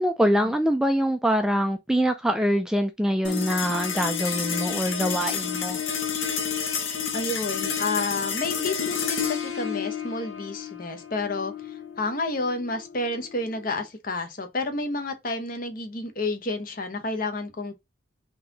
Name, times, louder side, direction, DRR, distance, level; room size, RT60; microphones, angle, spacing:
voice 1, 0.0-5.8, equal, 5° right, 0.3 m, -24 dB
sound 1, 3.2-13.9, left 7 dB, 85° left, 0.9 m, -30 dB
voice 2, 7.1-17.7, left 2 dB, 45° left, 0.8 m, -30 dB
3.9 x 2.8 x 3.9 m
head